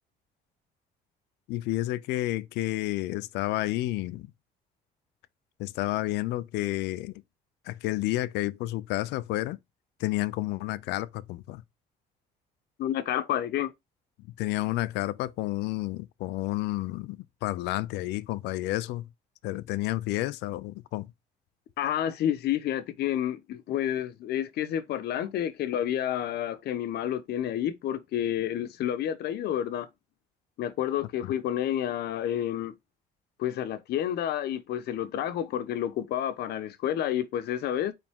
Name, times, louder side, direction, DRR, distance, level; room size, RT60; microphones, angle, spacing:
voice 1, 1.5-4.3 5.6-7.1 7.7-9.6 10.0-11.6 14.4-19.1 19.4-21.1 31.2-31.3, left 17 dB, 90° left, 0.6 m, -30 dB
voice 2, 12.8-13.7 21.8-29.9 30.6-32.7 33.4-37.9, left 11 dB, 70° left, 1.2 m, -30 dB
9.2 x 3.8 x 3.7 m
cardioid pair, 110°, 17 cm